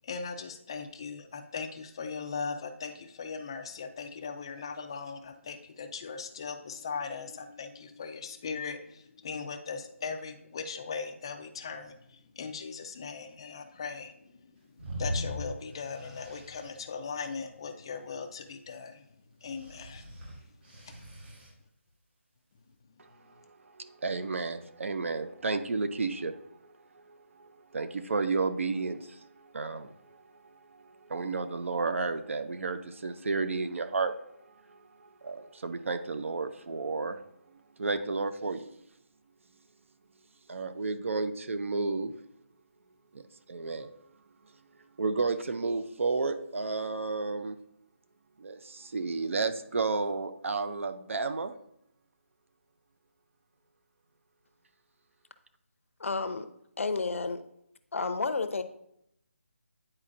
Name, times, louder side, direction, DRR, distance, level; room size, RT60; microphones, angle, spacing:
voice 1, 0.0-14.3 15.0-19.0 19.4-20.1 20.9-21.0 21.2-21.3, left 5 dB, 20° left, 0.3 m, -39 dB
sound 1, 14.8-16.7 19.5-21.5, equal, 45° right, 2.0 m, -39 dB
voice 2, 23.0-26.5 27.0-37.2 37.8-38.7 40.5-42.1 43.1-43.2 43.5-43.9 45.0-47.6 48.4-51.5, right 3 dB, 60° right, 0.6 m, -32 dB
voice 3, 56.0-56.5 56.8-57.4 57.9-58.6, left 4 dB, 65° left, 0.6 m, -31 dB
9.7 x 4.3 x 2.5 m
figure-of-eight pair, 165°, 8 cm